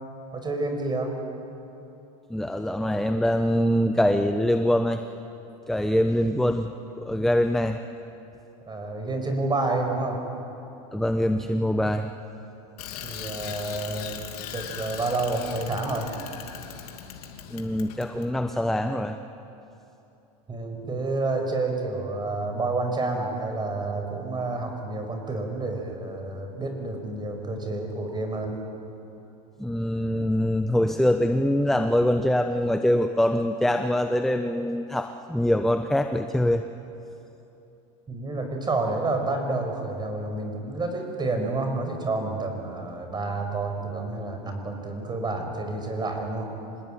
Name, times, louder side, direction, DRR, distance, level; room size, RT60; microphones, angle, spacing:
voice 1, 0.3-1.1 8.7-10.2 13.0-14.2 14.5-16.1 20.5-28.6 38.1-46.5, right 2 dB, 20° right, 4 dB, 5.8 m, -29 dB
voice 2, 2.3-5.0 5.7-6.7 7.0-7.8 10.9-12.1 17.5-19.2 29.6-36.6, left 1 dB, ahead, 7 dB, 1.0 m, -24 dB
Bicycle, 12.8-18.3, left 9 dB, 75° left, 3.0 m, -39 dB
27.5 x 19.5 x 9.1 m, 2.9 s
hypercardioid pair, 95°, 20 cm